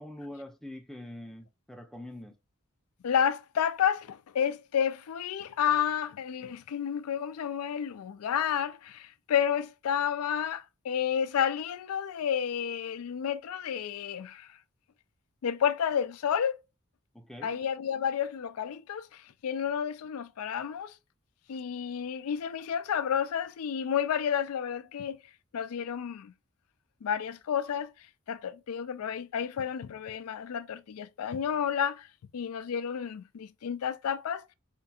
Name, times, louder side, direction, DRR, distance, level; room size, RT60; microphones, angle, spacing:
voice 1, 0.0-2.4 17.1-17.6, left 1 dB, ahead, 0.5 m, -44 dB
voice 2, 3.0-14.6 15.4-16.6 17.4-21.0 21.5-25.2 25.5-26.3 27.0-27.9 28.3-32.1 32.3-34.4, left 8 dB, 90° left, 0.4 m, -31 dB
4.3 x 2.7 x 2.3 m
head